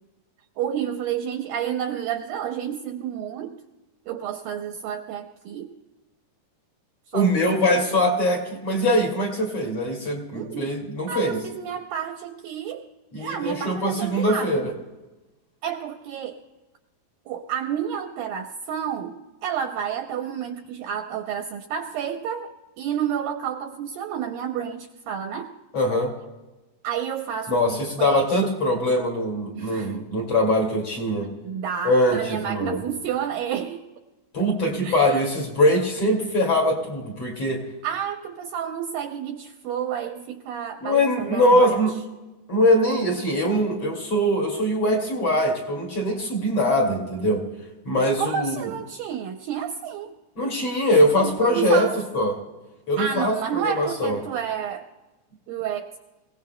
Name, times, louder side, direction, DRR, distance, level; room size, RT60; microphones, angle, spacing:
voice 1, 0.6-3.6 4.1-5.7 7.1-8.0 10.3-10.7 11.1-12.9 13.2-14.8 15.6-16.4 17.3-25.5 26.8-28.5 29.6-29.9 31.2-33.8 34.6-35.2 37.8-41.8 48.2-50.1 51.2-52.0 53.0-54.9 55.5-55.9, right 8 dB, 80° right, 5 dB, 2.1 m, -30 dB
voice 2, 7.1-11.4 13.1-14.6 25.7-26.1 27.5-31.3 31.8-32.8 34.3-37.6 40.8-41.9 42.5-47.4 47.8-48.5 50.4-51.9 52.1-52.4 52.9-53.3 53.6-54.2, equal, 40° left, 0 dB, 2.7 m, -22 dB
26.0 x 17.5 x 2.2 m, 1.1 s
omnidirectional pair, 4.7 m